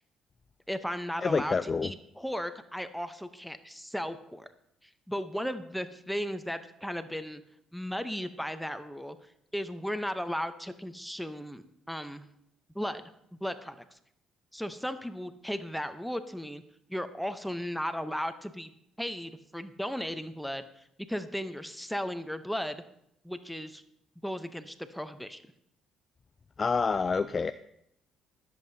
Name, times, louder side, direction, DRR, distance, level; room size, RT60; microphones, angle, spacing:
voice 1, 0.7-4.5 4.8-7.4 7.7-9.2 9.5-12.3 12.7-13.0 13.4-14.0 14.5-16.6 16.9-18.7 19.0-22.8 23.2-23.8 24.2-25.4, equal, ahead, 9 dB, 0.8 m, -36 dB
voice 2, 1.2-1.9 26.6-27.5, left 5 dB, 35° left, 12 dB, 0.3 m, -27 dB
21.0 x 7.5 x 2.8 m, 0.76 s
supercardioid pair, 65°, 0 cm